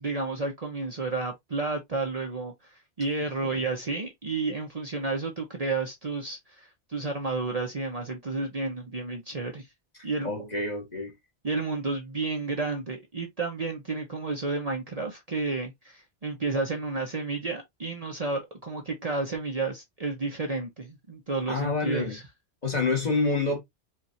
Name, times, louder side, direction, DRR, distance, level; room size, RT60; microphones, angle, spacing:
voice 1, 0.0-9.7 10.0-10.5 11.4-22.2, right 3 dB, 35° right, 0.8 m, -31 dB
voice 2, 10.2-11.1 21.5-22.2 22.6-23.6, left 3 dB, 35° left, 1.4 m, -27 dB
4.5 x 2.6 x 2.6 m
omnidirectional pair, 1.2 m